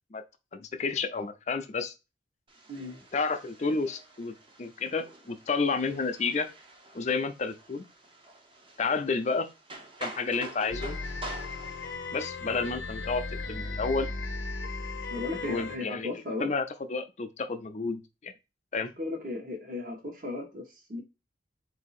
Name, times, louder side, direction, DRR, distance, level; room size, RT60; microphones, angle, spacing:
voice 1, 0.5-1.9 3.1-4.3 4.6-6.5 6.9-7.8 8.8-9.5 10.0-11.0 12.1-14.1 15.4-16.1 16.4-18.3 18.7-18.9, left 4 dB, 40° left, 0.4 m, -30 dB
sound 1, 2.5-11.9, right 2 dB, 25° right, 0.7 m, -47 dB
sound 2, 10.7-15.8, left 3 dB, 80° left, 0.7 m, -36 dB
voice 2, 15.1-16.5 19.0-21.0, left 2 dB, 45° right, 1.1 m, -36 dB
3.9 x 2.7 x 4.1 m
head